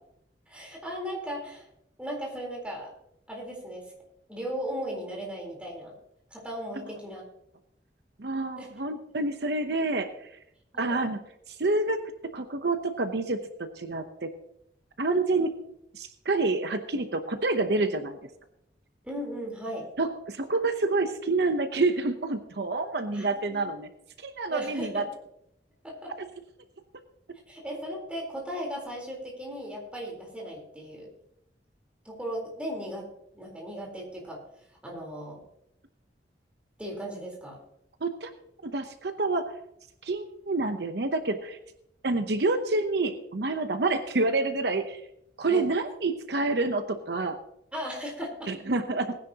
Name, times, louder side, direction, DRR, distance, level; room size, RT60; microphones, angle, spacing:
voice 1, 0.5-1.7 2.0-2.9 3.3-3.8 4.3-5.9 6.3-7.2 8.6-8.7 10.7-11.0 19.0-19.9 23.1-23.7 24.5-25.1 25.8-26.1 27.5-31.1 32.0-33.1 33.3-34.4 34.8-35.4 36.8-37.6 45.5-45.7 47.7-48.5, equal, 5° right, -1 dB, 3.9 m, -37 dB
voice 2, 8.2-10.3 10.8-11.2 11.5-14.3 15.0-15.5 15.9-18.2 20.0-23.9 24.2-25.1 38.0-38.3 38.6-39.5 40.0-41.6 42.0-45.0 45.4-47.4 48.5-49.2, right 3 dB, 65° right, 8 dB, 0.8 m, -28 dB
19.5 x 10.0 x 2.9 m, 0.78 s
head